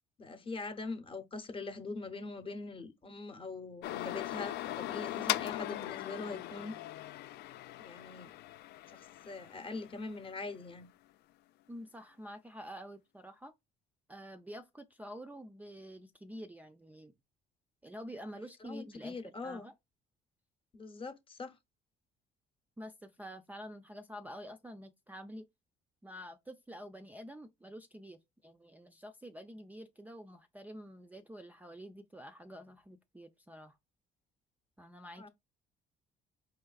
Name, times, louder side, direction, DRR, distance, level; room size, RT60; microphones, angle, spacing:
voice 1, 0.2-6.7 7.8-8.3 8.9-10.9 18.6-19.7 20.7-21.5 35.2-35.3, left 3 dB, 30° left, 0.8 m, -42 dB
sound 1, 3.8-10.5, left 15 dB, 75° left, 0.4 m, -39 dB
voice 2, 11.7-13.5 14.1-17.1 17.8-19.7 22.8-25.4 26.0-33.8 34.8-35.3, equal, 10° right, 0.4 m, -48 dB
4.5 x 3.2 x 2.3 m
cardioid pair, 110°, 17 cm